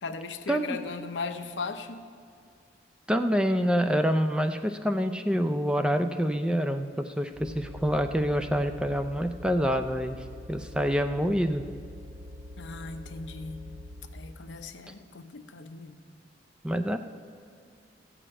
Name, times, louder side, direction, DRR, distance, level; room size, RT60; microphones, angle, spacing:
voice 1, 0.0-2.0 12.6-13.6 14.1-16.0, left 4 dB, 85° left, 8 dB, 0.7 m, -37 dB
voice 2, 3.1-11.6 16.6-17.0, equal, 5° right, 8 dB, 0.4 m, -27 dB
sound 1, 7.3-14.2, left 1 dB, 90° right, 2.7 m, -44 dB
14.0 x 5.1 x 8.6 m, 2.3 s
head